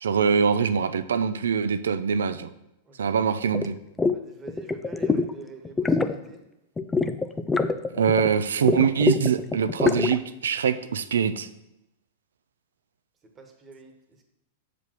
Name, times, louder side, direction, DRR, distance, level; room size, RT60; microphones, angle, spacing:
voice 1, 0.0-2.5 3.0-3.8 7.9-11.5, right 6 dB, 80° right, 12 dB, 0.4 m, -23 dB
voice 2, 2.9-3.2 4.1-6.4 13.3-14.2, right 3 dB, 20° right, 4 dB, 1.5 m, -45 dB
sound 1, 3.5-3.7 4.0-4.2 4.5-5.3 5.6-6.2 6.8-8.3 8.6-10.2, left 4 dB, 15° left, 0.5 m, -24 dB
6.7 x 5.0 x 5.9 m, 0.88 s
hypercardioid pair, 110°, 0 cm